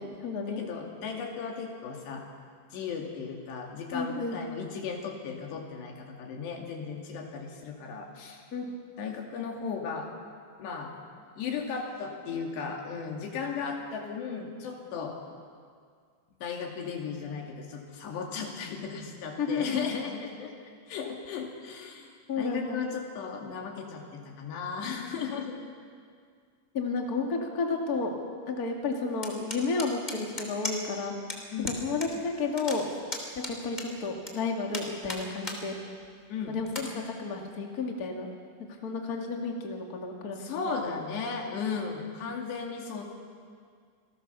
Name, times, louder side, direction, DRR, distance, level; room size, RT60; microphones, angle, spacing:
voice 1, 0.0-0.6 3.9-4.4 8.5-8.7 19.4-19.9 22.3-22.8 25.3-25.4 26.7-28.1 28.5-31.1 31.6-32.9 33.3-35.7 36.5-38.3 38.8-40.4, left 4 dB, 30° left, 1 dB, 1.8 m, -32 dB
voice 2, 0.6-2.2 2.7-8.4 9.0-10.1 10.6-10.9 11.4-15.2 16.4-20.5 20.9-22.1 22.4-25.6 31.5-31.8 36.3-36.6 40.4-43.0, left 5 dB, 80° left, 1 dB, 4.6 m, -36 dB
sound 1, 29.2-31.0 31.3-31.4 31.7-32.1 32.4-34.3 34.7-35.6 36.0-36.1 36.7-36.9, left 1 dB, 15° left, 2.1 m, -36 dB
27.5 x 18.5 x 6.9 m, 2.1 s
omnidirectional pair, 4.8 m